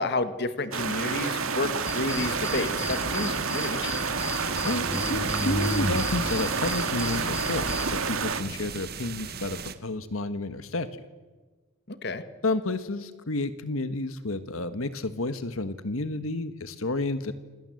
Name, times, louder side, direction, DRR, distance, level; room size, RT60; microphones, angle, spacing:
voice 1, 0.0-4.0 11.9-12.2, left 2 dB, 55° left, 10 dB, 1.6 m, -30 dB
sound 1, 0.7-8.4, right 5 dB, 80° right, 2.1 m, -29 dB
sound 2, 1.9-8.0, left 1 dB, 15° left, 1.1 m, -33 dB
sound 3, 4.1-9.8, right 6 dB, 50° right, 1.7 m, -38 dB
voice 2, 4.6-10.9 12.4-17.3, left 2 dB, 80° left, 11 dB, 1.5 m, -31 dB
27.5 x 26.5 x 7.8 m, 1.3 s
head